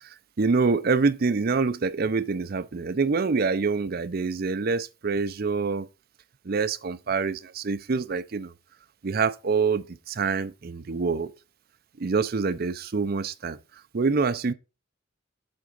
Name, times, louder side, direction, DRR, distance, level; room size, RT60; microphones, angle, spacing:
voice 1, 0.4-5.9 6.4-8.5 9.0-11.3 12.0-13.6 13.9-14.5, right 4 dB, 50° right, 0.5 m, -26 dB
7.8 x 3.6 x 5.3 m
head